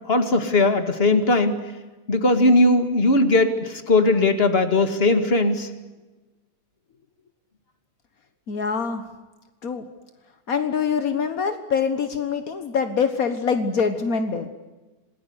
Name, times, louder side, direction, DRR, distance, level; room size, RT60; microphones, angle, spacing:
voice 1, 0.0-1.5 2.1-5.7, left 2 dB, 20° left, 8 dB, 1.8 m, -19 dB
voice 2, 8.5-9.0 9.6-9.8 10.5-14.5, left 6 dB, 65° left, 9 dB, 0.8 m, -24 dB
28.0 x 19.5 x 9.8 m, 1.2 s
omnidirectional pair, 3.7 m